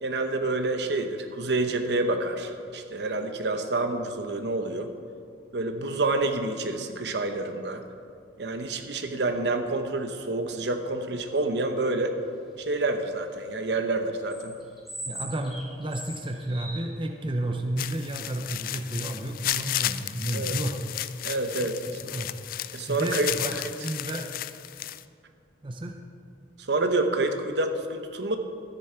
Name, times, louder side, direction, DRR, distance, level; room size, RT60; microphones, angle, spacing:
voice 1, 0.0-4.9 5.5-7.8 8.4-12.2 12.6-14.6 20.3-20.5 21.2-21.8 22.7-23.3 23.6-23.7 26.7-28.4, right 2 dB, 65° right, 6 dB, 0.9 m, -28 dB
sound 1, 12.5-12.9 13.3-13.9 14.2-16.9 17.2-17.3 18.2-18.7 19.0-19.1 19.5-19.7 20.4-20.5 20.8-21.1, right 1 dB, ahead, 2.2 m, -41 dB
voice 2, 15.1-20.8 21.6-22.3 22.9-24.3 25.6-26.0, right 1 dB, 25° right, 4 dB, 0.6 m, -32 dB
sound 2, 17.8-25.0, left 13 dB, 50° left, 0.3 m, -33 dB
13.0 x 10.0 x 4.5 m, 2.3 s
head